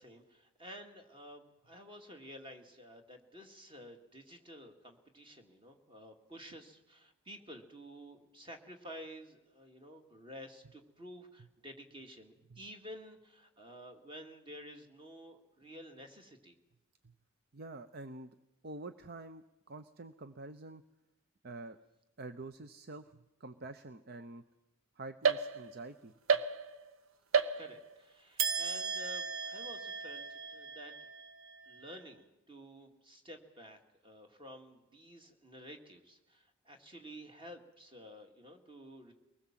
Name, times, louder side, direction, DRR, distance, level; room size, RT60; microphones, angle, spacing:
voice 1, 0.0-16.6 27.6-31.0 31.7-39.1, equal, 25° right, 4 dB, 2.2 m, -51 dB
voice 2, 17.5-18.4 18.6-20.8 21.4-21.8 22.2-24.4 25.0-26.1, right 2 dB, 50° right, 10 dB, 0.7 m, -47 dB
sound 1, 25.2-25.9 26.3-26.9 27.3-28.0 28.4-31.8, right 6 dB, 70° right, 1.0 m, -34 dB
23.0 x 20.0 x 7.5 m, 0.95 s
head